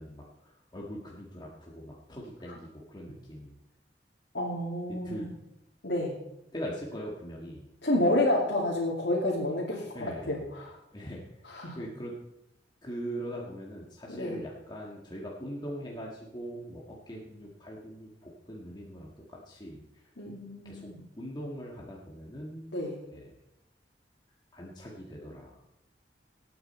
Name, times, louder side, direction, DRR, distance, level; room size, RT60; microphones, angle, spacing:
voice 1, 0.0-3.6 5.0-5.3 6.5-7.7 9.9-10.5 10.9-11.2 11.8-12.1 12.8-20.1 20.7-20.9 21.2-22.7 23.1-23.4 24.5-25.6, equal, 25° left, -3 dB, 1.8 m, -41 dB
voice 2, 4.3-5.3 5.8-6.1 7.8-10.8 11.4-11.8 14.1-14.4 20.2-21.0 22.7-23.0, left 1 dB, 70° left, -5 dB, 2.7 m, -29 dB
19.0 x 9.0 x 4.3 m, 0.84 s
head